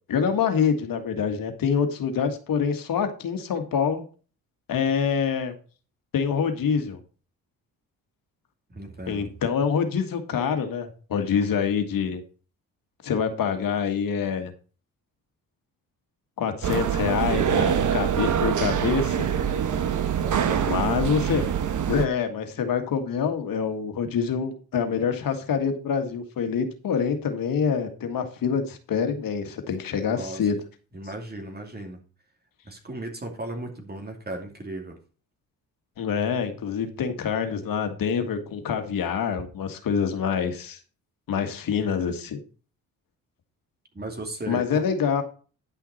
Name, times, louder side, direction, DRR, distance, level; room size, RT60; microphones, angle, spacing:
voice 1, 0.1-4.0 4.7-5.5 6.1-7.0 9.1-12.2 13.0-14.5 16.4-19.3 20.7-21.5 21.9-30.6 36.0-40.8 41.3-42.4 44.5-45.2, left 6 dB, 65° left, 7 dB, 1.8 m, -26 dB
voice 2, 8.7-9.3 20.2-21.0 30.0-30.5 30.9-32.0 32.6-35.0 43.9-44.8, right 1 dB, 25° right, 3 dB, 2.7 m, -36 dB
sound 1, 16.6-22.1, right 8 dB, 55° right, 1.1 m, -24 dB
10.5 x 5.9 x 4.2 m, 0.37 s
cardioid pair, 75°, 37 cm